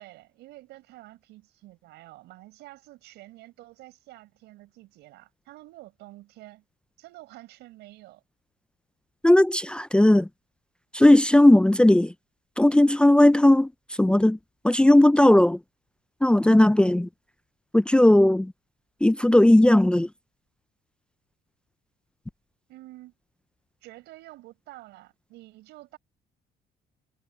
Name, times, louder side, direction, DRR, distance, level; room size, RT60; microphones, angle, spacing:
voice 1, 0.0-6.6 7.0-8.2 22.7-23.1 23.8-26.0, right 18 dB, 85° right, 7.7 m, -48 dB
voice 2, 9.2-10.3 10.9-12.1 12.6-13.7 14.0-14.4 14.6-15.6 16.2-17.1 17.7-18.5 19.0-20.1, left 1 dB, 5° left, 0.5 m, -17 dB
cardioid pair, 110°, 17 cm